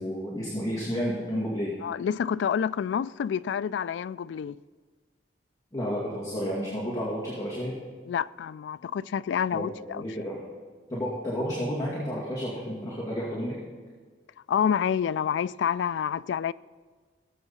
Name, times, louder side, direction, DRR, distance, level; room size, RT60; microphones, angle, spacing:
voice 1, 0.0-1.7 5.7-7.7 9.5-10.4 10.9-13.5, equal, 20° left, 2.3 m, -31 dB
voice 2, 1.8-4.6 8.1-10.1 14.5-16.5, left 8 dB, 80° left, 0.3 m, -28 dB
19.0 x 7.8 x 4.2 m
head